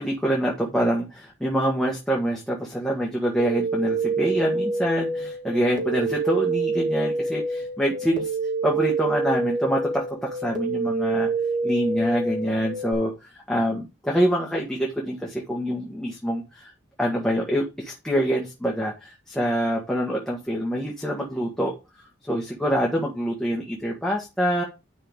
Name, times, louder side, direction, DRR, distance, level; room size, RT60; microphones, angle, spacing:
voice 1, 0.0-8.4 8.6-11.3 11.6-13.1 13.5-16.7 17.0-21.7 22.3-24.6, equal, 5° left, -2 dB, 1.6 m, -25 dB
sound 1, 3.4-12.9, right 3 dB, 40° right, 2.3 m, -27 dB
10.5 x 5.6 x 3.6 m, 0.27 s
head